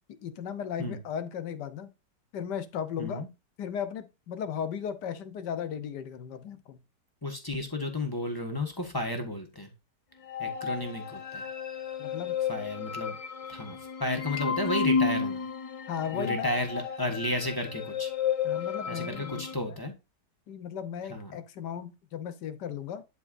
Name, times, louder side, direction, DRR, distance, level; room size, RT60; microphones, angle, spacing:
voice 1, 0.2-1.9 2.3-3.2 3.6-6.8 12.0-12.4 15.9-16.5 18.4-19.8 20.5-23.0, left 8 dB, 75° left, 1.4 m, -36 dB
voice 2, 7.2-9.7 10.4-11.5 12.5-13.2 13.5-15.4 16.1-18.1 18.9-19.9 21.1-21.3, left 1 dB, 15° left, 1.3 m, -33 dB
sound 1, 10.2-19.5, left 6 dB, 50° left, 0.4 m, -32 dB
11.0 x 4.6 x 2.6 m
omnidirectional pair, 1.9 m